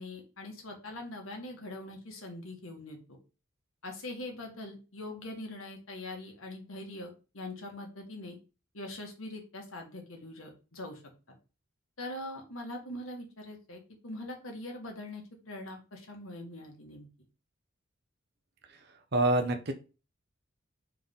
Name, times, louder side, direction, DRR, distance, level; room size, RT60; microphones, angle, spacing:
voice 1, 0.0-3.2 3.8-8.4 8.7-11.0 12.0-17.1, left 1 dB, 85° left, 2 dB, 1.8 m, -42 dB
voice 2, 19.1-19.7, right 2 dB, 55° right, 5 dB, 1.0 m, -26 dB
4.6 x 3.9 x 5.5 m, 0.32 s
head